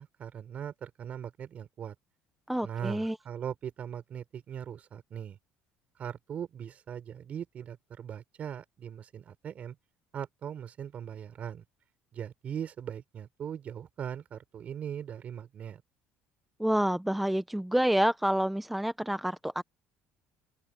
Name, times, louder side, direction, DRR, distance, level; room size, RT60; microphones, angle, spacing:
voice 1, 0.0-1.9 2.6-5.4 6.0-9.8 10.1-11.6 12.1-15.8, right 8 dB, 35° right, 5.7 m, -40 dB
voice 2, 2.5-3.2 16.6-19.6, equal, 5° right, 0.5 m, -28 dB
open air
cardioid pair, 155°, 4 cm